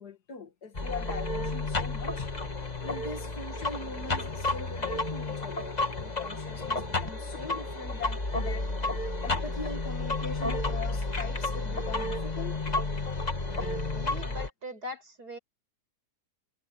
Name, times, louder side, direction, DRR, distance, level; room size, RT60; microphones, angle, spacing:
voice 1, 0.0-2.3 2.8-8.7 9.2-12.6, left 4 dB, 80° left, 2.6 m, -41 dB
sound 1, 0.7-14.5, left 2 dB, 25° left, 1.8 m, -31 dB
voice 2, 13.5-15.4, equal, 75° right, 5.7 m, -42 dB
omnidirectional pair, 1.7 m